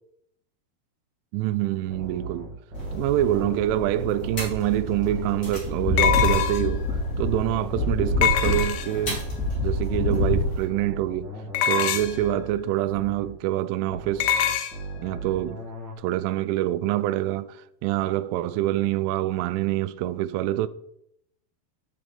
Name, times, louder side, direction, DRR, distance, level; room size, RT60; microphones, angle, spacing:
voice 1, 1.3-2.5 2.9-6.9 7.2-9.2 9.6-11.3 11.6-14.5 15.0-15.6 16.0-20.7, right 13 dB, 85° right, 3.0 m, -26 dB
sound 1, 1.9-5.4 5.9-9.4 9.9-13.4 13.9-15.9, right 1 dB, 30° right, 2.1 m, -39 dB
sound 2, 2.7-10.6, left 1 dB, 20° left, 4.4 m, -27 dB
sound 3, 4.4-4.5 6.0-6.8 8.2-9.1 11.5-12.3 14.2-14.7, left 9 dB, 80° left, 2.9 m, -23 dB
8.8 x 7.2 x 5.1 m
omnidirectional pair, 5.5 m